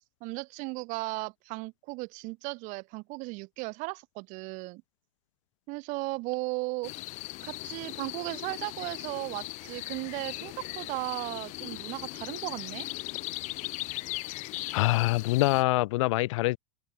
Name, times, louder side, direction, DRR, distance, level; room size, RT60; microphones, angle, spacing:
voice 1, 0.2-4.8 5.7-6.9 7.4-12.9, right 26 dB, 55° right, 3.5 m, -36 dB
sound 1, 6.8-15.6, left 21 dB, 50° left, 4.4 m, -39 dB
voice 2, 14.7-16.6, left 20 dB, 70° left, 0.7 m, -25 dB
open air
supercardioid pair, 130°, 16 cm